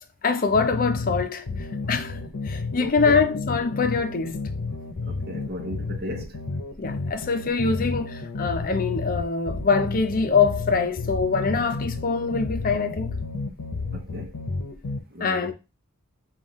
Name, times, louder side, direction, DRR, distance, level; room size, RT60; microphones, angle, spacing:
voice 1, 0.2-2.2 2.4-4.4 6.8-13.1 15.2-15.5, left 4 dB, 40° left, 0.5 m, -24 dB
sound 1, 0.5-15.0, left 3 dB, 80° left, 0.7 m, -31 dB
voice 2, 2.8-3.2 5.0-6.4 13.9-14.3 15.1-15.5, left 1 dB, 45° right, 0.8 m, -35 dB
5.5 x 2.4 x 3.0 m
head